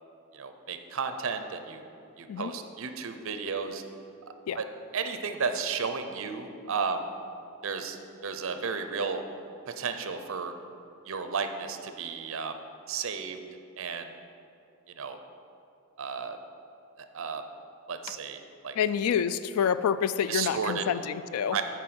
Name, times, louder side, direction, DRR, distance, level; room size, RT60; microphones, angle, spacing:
voice 1, 0.3-1.8 2.2-3.8 4.6-4.7 4.9-7.1 7.6-9.2 9.7-10.5 11.1-12.6 12.9-13.4 13.8-14.1 14.9-15.2 16.0-16.4 17.1-17.4 17.9-18.4 18.6-18.8 20.3-20.8 21.5-21.6, right 5 dB, 65° right, 8 dB, 0.6 m, -33 dB
voice 2, 18.8-21.6, left 8 dB, 85° left, 14 dB, 0.3 m, -27 dB
8.6 x 4.6 x 6.1 m, 2.6 s
head